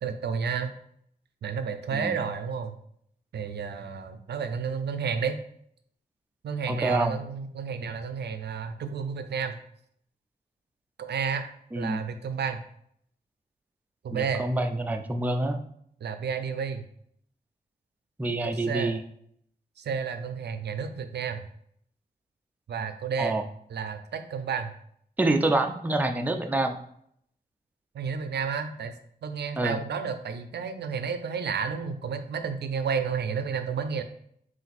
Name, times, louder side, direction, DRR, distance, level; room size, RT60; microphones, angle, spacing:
voice 1, 0.0-0.7 1.4-2.7 3.3-5.4 6.4-9.5 11.0-11.5 11.7-12.6 14.0-14.4 16.0-16.8 18.4-19.0 19.8-21.4 22.7-23.4 23.7-24.7 27.9-28.9 29.2-34.0, right 6 dB, 85° right, 9 dB, 0.5 m, -31 dB
voice 2, 6.7-7.2 11.7-12.0 14.1-15.6 18.2-19.0 23.2-23.4 25.2-26.8 29.6-29.8, right 2 dB, 10° right, 5 dB, 0.4 m, -27 dB
4.2 x 2.6 x 4.0 m, 0.68 s
wide cardioid pair, 90°, 17 cm